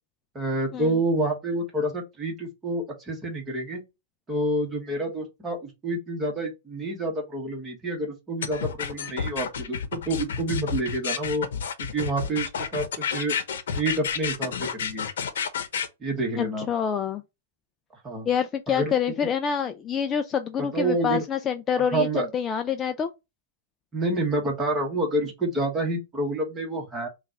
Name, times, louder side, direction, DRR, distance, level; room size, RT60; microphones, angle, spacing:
voice 1, 0.3-3.8 4.3-11.5 11.9-12.9 13.1-13.4 13.7-15.1 16.0-16.7 18.0-18.3 18.7-18.9 20.6-21.2 21.8-22.3 23.9-27.1, right 1 dB, 15° right, 1.3 m, -28 dB
sound 1, 8.4-15.9, left 7 dB, 80° left, 0.8 m, -30 dB
voice 2, 16.4-17.2 18.3-23.1, left 8 dB, 20° left, 0.3 m, -27 dB
5.7 x 2.4 x 2.9 m
hypercardioid pair, 150°, 0 cm